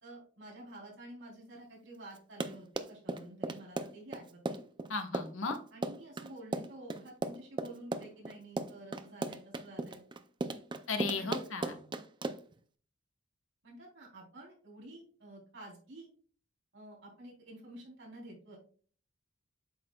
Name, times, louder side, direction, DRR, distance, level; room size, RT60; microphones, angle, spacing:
voice 1, 0.0-4.6 5.7-10.0 11.2-11.4 13.6-16.1 16.7-18.6, right 1 dB, 65° right, -3 dB, 3.5 m, -50 dB
Run, 2.2-12.6, right 2 dB, 25° right, 0.4 m, -37 dB
voice 2, 4.9-5.6 10.9-11.8, left 4 dB, 90° left, 5 dB, 1.2 m, -35 dB
8.2 x 6.3 x 2.3 m, 0.43 s
head